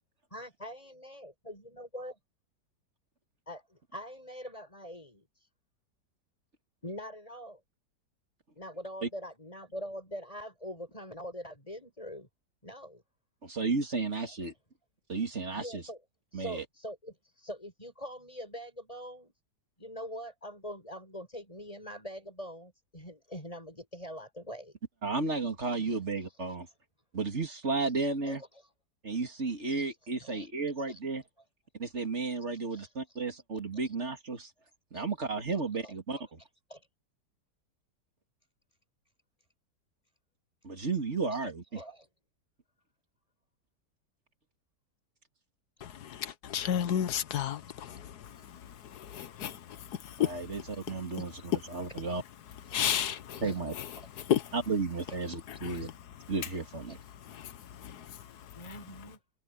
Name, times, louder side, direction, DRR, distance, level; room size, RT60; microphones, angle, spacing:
voice 1, 0.3-2.1 3.5-5.5 6.8-7.6 8.6-12.3 12.6-13.0 14.1-14.2 15.5-16.0 16.3-19.3 19.8-24.7 25.7-26.6 27.8-28.7 29.6-30.5 30.8-31.0 32.7-33.2 33.7-34.0 34.9-35.1 35.5-36.9 41.3-42.1 47.8-48.0 48.4-48.5 52.6-52.8 53.3-53.6 54.0-54.1 55.1-55.2 55.5-55.9 56.9-57.0 58.5-59.2, equal, 20° left, 7.4 m, -44 dB
voice 2, 13.4-14.5 15.1-15.8 16.3-16.6 25.0-26.7 27.1-28.4 29.0-31.2 31.8-34.5 34.9-36.2 40.6-41.6 50.2-52.2 53.4-53.7 54.5-55.9 56.3-57.0, right 4 dB, 40° right, 2.7 m, -33 dB
voice 3, 45.8-47.7 48.2-51.0 51.7-51.8 52.7-53.4 53.7-53.9 54.2-54.5 55.5-55.9 57.3-58.7, left 10 dB, 70° left, 1.4 m, -34 dB
omnidirectional pair, 1.8 m